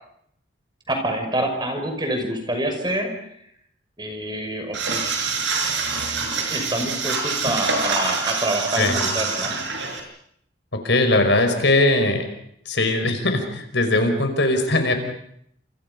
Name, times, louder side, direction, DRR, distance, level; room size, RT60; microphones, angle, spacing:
voice 1, 0.9-3.1 4.0-5.0 6.2-9.6, right 1 dB, 25° right, 4 dB, 5.8 m, -27 dB
sound 1, 4.7-10.0, right 4 dB, 75° right, 7.0 m, -25 dB
voice 2, 8.8-9.1 10.7-12.3 12.7-14.9, left 2 dB, 70° left, 6 dB, 5.4 m, -20 dB
30.0 x 28.5 x 5.4 m, 0.69 s
head